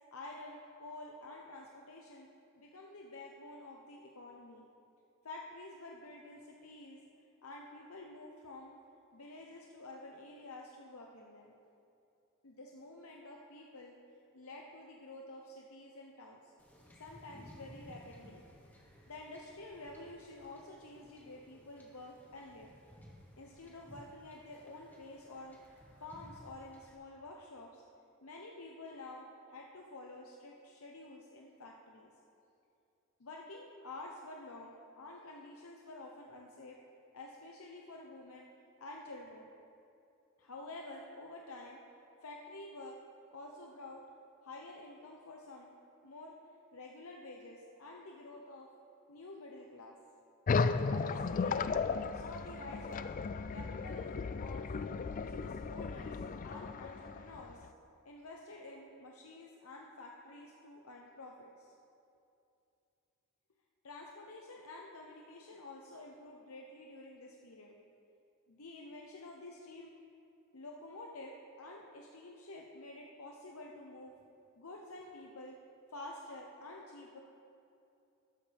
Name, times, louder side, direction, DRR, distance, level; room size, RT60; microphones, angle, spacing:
voice 1, 0.1-2.3 2.6-4.7 5.2-7.0 7.4-8.7 9.1-11.5 12.4-13.9 14.3-16.5 17.0-18.4 19.1-22.7 23.4-25.6 26.0-27.8 28.2-32.1 33.2-36.8 37.1-38.5 38.8-39.5 40.4-41.8 42.2-43.0 43.3-44.0 44.4-45.7 46.0-46.4 46.7-48.7 49.1-50.0 51.0-51.8 52.1-53.1 53.5-54.7 55.1-57.7 58.0-61.7 63.8-67.8 68.5-69.9 70.5-74.3 74.6-75.6 75.9-77.2, left 2 dB, 75° left, -1 dB, 0.9 m, -49 dB
Wind / Ocean / Boat Water vehicle, 16.6-27.0, equal, 10° left, 1.5 m, -58 dB
sound 1, 50.5-57.7, left 4 dB, 40° left, 0.3 m, -35 dB
13.0 x 12.5 x 3.5 m, 2.7 s
head